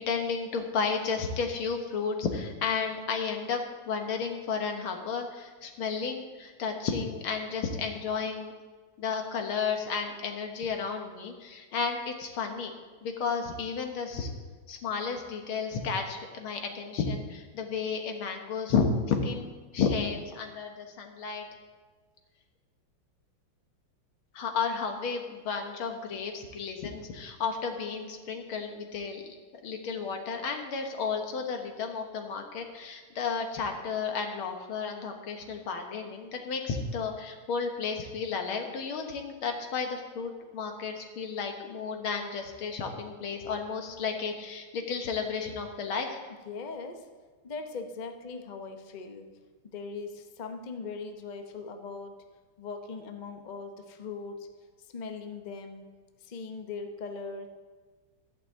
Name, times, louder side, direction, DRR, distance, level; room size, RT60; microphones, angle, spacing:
voice 1, 0.0-8.5 9.0-12.7 13.0-14.3 14.7-21.4 24.3-29.2 29.6-46.2, left 5 dB, 85° left, 4 dB, 2.1 m, -32 dB
voice 2, 46.4-47.1 47.4-49.3 49.6-52.2 52.6-54.5 54.8-55.9 56.2-57.5, left 4 dB, 55° left, 6 dB, 0.4 m, -40 dB
12.0 x 6.0 x 7.8 m, 1.4 s
omnidirectional pair, 2.2 m